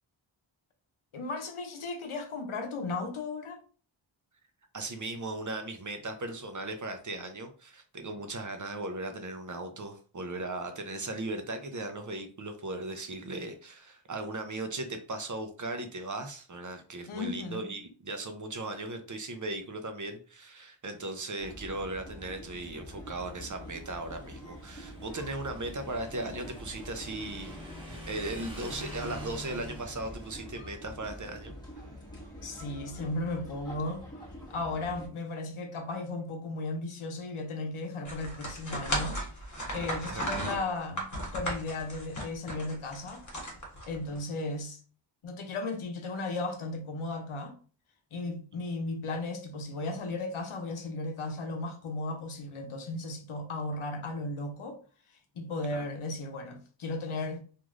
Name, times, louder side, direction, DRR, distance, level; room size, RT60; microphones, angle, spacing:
voice 1, 1.1-3.6 17.1-17.7 32.4-34.0 34.5-41.1 41.3-43.2 43.8-44.8 45.2-47.6 48.1-54.8 55.3-57.4, left 2 dB, 90° left, 0.7 m, -35 dB
voice 2, 4.7-31.5 40.1-40.2 40.5-40.7 44.1-44.2 55.7-55.8, right 2 dB, 40° right, 0.6 m, -37 dB
sound 1, 21.4-35.1, equal, 10° left, 1.3 m, -46 dB
Motorcycle / Engine, 23.4-30.4, equal, 10° right, 1.1 m, -46 dB
sound 2, 38.0-44.2, right 1 dB, 40° left, 1.0 m, -35 dB
3.0 x 2.5 x 2.4 m
wide cardioid pair, 55°, 48 cm